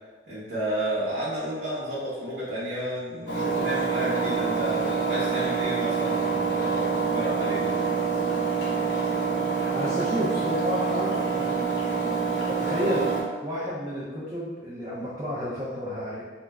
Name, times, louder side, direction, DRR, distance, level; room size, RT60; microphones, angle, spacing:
voice 1, 0.3-7.7, right 1 dB, 55° right, -12 dB, 0.8 m, -31 dB
Engine, 3.3-13.2, right 5 dB, 70° left, 0.7 m, -26 dB
voice 2, 9.7-11.8 12.4-16.2, equal, 25° right, -9 dB, 0.5 m, -31 dB
2.4 x 2.1 x 3.3 m, 1.3 s
head